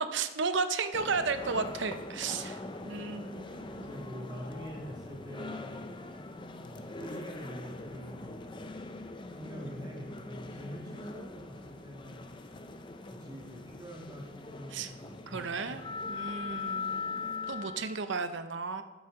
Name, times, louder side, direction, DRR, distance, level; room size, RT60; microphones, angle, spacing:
voice 1, 0.1-4.0 14.7-14.9 15.3-15.8 16.1-18.8, right 4 dB, 60° right, 9 dB, 0.6 m, -34 dB
sound 1, 0.9-18.1, left 3 dB, 25° left, 0.4 m, -42 dB
voice 2, 3.8-6.0 6.7-8.7 9.3-12.3 13.1-16.0, equal, 20° right, -2 dB, 1.7 m, -45 dB
13.0 x 7.4 x 3.7 m, 1.2 s
head